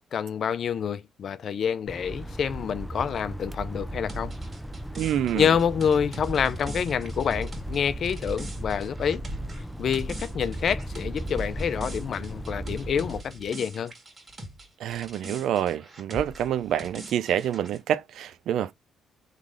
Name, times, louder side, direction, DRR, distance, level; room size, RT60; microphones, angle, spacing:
voice 1, 0.1-4.3 5.3-9.2 9.8-13.9, left 7 dB, 55° left, 0.5 m, -27 dB
sound 1, 1.9-13.2, right 1 dB, ahead, 0.5 m, -36 dB
sound 2, 4.1-14.7 14.9-17.8, right 1 dB, 35° right, 1.8 m, -43 dB
voice 2, 5.0-5.5 14.8-18.7, right 10 dB, 75° right, 0.4 m, -27 dB
3.7 x 3.2 x 3.6 m
cardioid pair, 90°, 0 cm